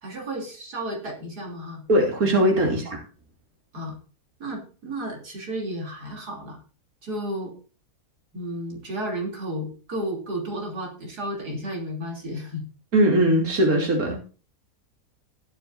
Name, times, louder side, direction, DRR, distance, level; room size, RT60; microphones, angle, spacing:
voice 1, 0.0-1.8 3.7-4.0 4.4-6.6 7.0-7.5 8.3-12.6, right 1 dB, 85° right, 0 dB, 3.7 m, -32 dB
voice 2, 1.9-3.0 12.9-14.2, right 1 dB, 65° right, 1 dB, 3.3 m, -20 dB
19.5 x 7.1 x 2.6 m, 0.37 s
omnidirectional pair, 1.6 m